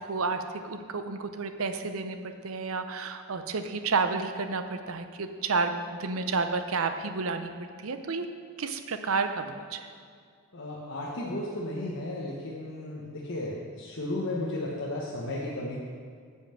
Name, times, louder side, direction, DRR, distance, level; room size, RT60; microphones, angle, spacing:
voice 1, 0.0-7.5 7.8-8.3 8.6-9.9, right 4 dB, 70° right, 8 dB, 0.7 m, -31 dB
voice 2, 10.5-15.8, left 1 dB, 60° left, -4 dB, 1.2 m, -34 dB
9.9 x 5.6 x 7.5 m, 2.1 s
head